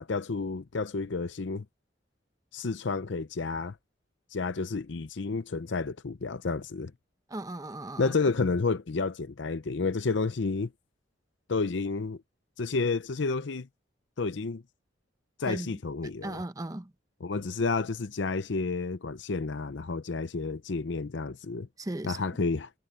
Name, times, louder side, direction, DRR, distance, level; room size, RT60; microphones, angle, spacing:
voice 1, 0.0-1.7 2.5-3.8 4.3-6.9 8.0-10.7 11.5-12.2 12.6-13.7 14.2-14.6 15.4-16.4 17.2-21.7 22.0-22.7, left 4 dB, 70° left, 0.6 m, -30 dB
voice 2, 7.3-8.1 15.4-15.7 16.2-16.9 21.8-22.2, right 1 dB, 20° right, 0.8 m, -36 dB
head